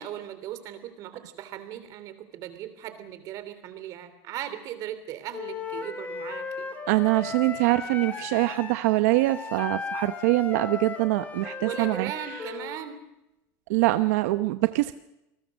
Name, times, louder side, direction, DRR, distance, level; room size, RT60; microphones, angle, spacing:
voice 1, 0.0-6.7 11.6-13.0, right 11 dB, 45° right, 10 dB, 3.0 m, -38 dB
Wind instrument woodwind instrument, 5.3-12.8, left 5 dB, 20° left, 2.1 m, -36 dB
voice 2, 6.9-12.6 13.7-14.9, right 19 dB, 85° right, 10 dB, 0.8 m, -24 dB
28.0 x 19.5 x 6.4 m, 0.91 s
cardioid pair, 165°, 8 cm